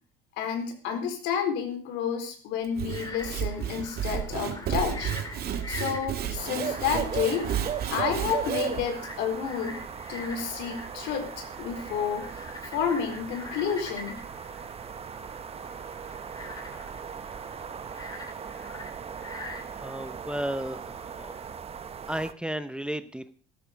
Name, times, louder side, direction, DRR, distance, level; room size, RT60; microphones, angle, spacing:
voice 1, 0.4-5.1 5.7-7.5 7.9-9.8 10.1-12.3 12.7-14.2, left 7 dB, 70° left, 5 dB, 4.1 m, -30 dB
Sawing / Wood, 2.6-8.8, right 9 dB, 55° right, 2.2 m, -32 dB
Frog, 2.8-21.5, left 2 dB, 20° left, 3.3 m, -45 dB
sound 1, 6.4-22.3, right 7 dB, 30° right, 1.1 m, -38 dB
voice 2, 19.8-21.3 22.1-23.3, right 1 dB, 5° right, 12 dB, 0.9 m, -33 dB
13.0 x 13.0 x 5.2 m, 0.41 s
supercardioid pair, 85°, 19 cm